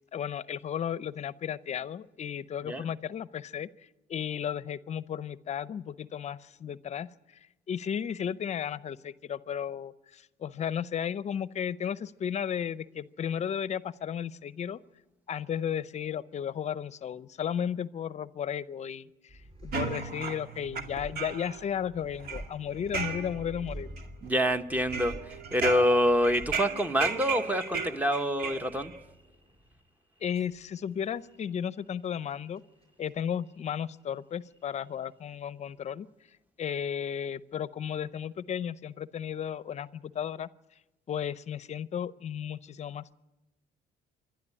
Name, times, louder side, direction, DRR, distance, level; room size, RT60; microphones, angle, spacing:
voice 1, 0.1-7.4 7.7-14.8 15.3-23.9 30.2-32.6 33.0-36.1 36.6-40.5 41.1-43.1, left 8 dB, 40° left, 17 dB, 0.6 m, -34 dB
sound 1, 19.3-34.2 34.4-35.3, right 1 dB, 35° right, 6.1 m, -50 dB
sound 2, 19.7-21.6 22.0-23.6 24.0-24.5 24.9-29.0, right 5 dB, 65° right, 2.2 m, -35 dB
voice 2, 24.2-25.1 25.5-28.9, equal, 10° right, 9 dB, 1.0 m, -26 dB
27.0 x 12.0 x 9.7 m, 1.0 s
cardioid pair, 110°, 17 cm